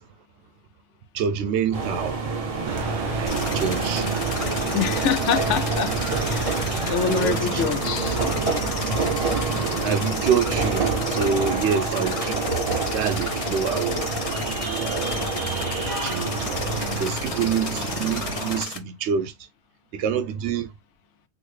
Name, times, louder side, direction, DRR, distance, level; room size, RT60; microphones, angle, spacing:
voice 1, 1.1-2.2 3.2-4.3 7.0-7.6 9.8-12.6 12.9-14.0 14.9-16.5 17.0-19.3 19.9-20.7, right 7 dB, 75° right, 0.8 m, -27 dB
sound 1, 1.7-17.0, right 4 dB, 40° right, 0.6 m, -28 dB
sound 2, 2.7-18.6, right 3 dB, 90° right, 1.2 m, -32 dB
sound 3, 3.3-18.8, left 5 dB, 45° left, 0.4 m, -33 dB
voice 2, 4.7-6.5 6.9-8.2, left 8 dB, 85° left, 0.9 m, -26 dB
3.9 x 2.0 x 3.2 m
omnidirectional pair, 1.2 m